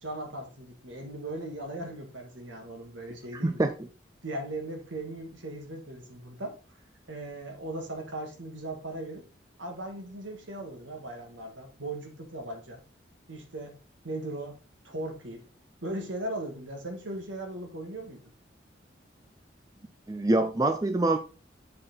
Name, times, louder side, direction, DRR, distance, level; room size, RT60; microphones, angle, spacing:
voice 1, 0.0-3.6 4.2-6.5 7.1-9.2 9.6-12.8 13.3-13.8 14.0-14.6 14.8-15.4 15.8-18.2, right 1 dB, 85° right, 3 dB, 2.0 m, -38 dB
voice 2, 3.4-3.7 20.1-21.2, right 2 dB, 20° right, 7 dB, 0.4 m, -25 dB
7.6 x 4.3 x 4.2 m, 0.35 s
head